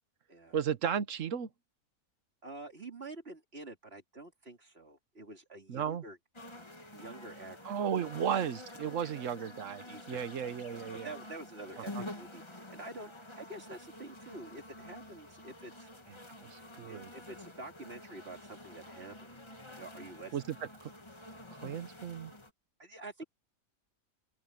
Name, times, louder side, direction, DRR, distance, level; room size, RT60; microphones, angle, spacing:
voice 1, 0.5-1.5 5.7-6.0 7.6-11.1 11.9-12.0 16.4-17.1 20.3-20.6 20.8-20.9 21.6-22.3, right 8 dB, 60° right, 1.3 m, -34 dB
voice 2, 2.4-6.2 6.9-8.2 9.0-9.3 9.8-15.9 16.9-19.3 19.8-20.4 22.8-23.2, right 2 dB, 40° right, 3.3 m, -48 dB
sound 1, 6.3-22.5, left 1 dB, 20° left, 1.6 m, -49 dB
open air
omnidirectional pair, 1.5 m